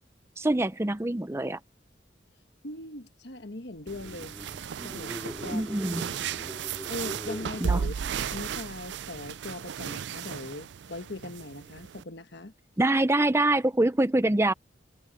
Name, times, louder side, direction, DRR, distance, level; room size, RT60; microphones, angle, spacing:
voice 1, 0.4-1.6 5.5-6.0 7.6-7.8 12.8-14.5, right 1 dB, 15° right, 0.5 m, -24 dB
voice 2, 2.6-4.4 4.8-5.7 6.0-6.2 6.9-7.9 8.2-12.5, left 2 dB, 60° left, 1.5 m, -40 dB
sound 1, 3.8-8.9, equal, ahead, 4.9 m, -42 dB
sound 2, 3.9-12.0, right 7 dB, 65° right, 0.4 m, -35 dB
head